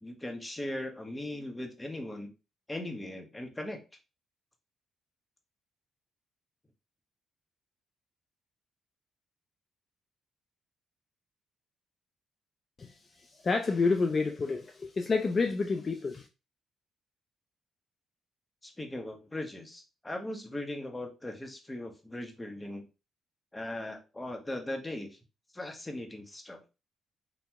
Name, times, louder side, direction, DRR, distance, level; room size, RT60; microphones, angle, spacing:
voice 1, 0.0-2.3 2.7-3.8 18.6-22.8 23.5-25.1 25.5-26.6, left 1 dB, 15° left, 0.8 m, -39 dB
voice 2, 13.4-16.3, left 4 dB, 35° left, 0.3 m, -28 dB
2.7 x 2.0 x 3.4 m
cardioid pair, 90°, 0 cm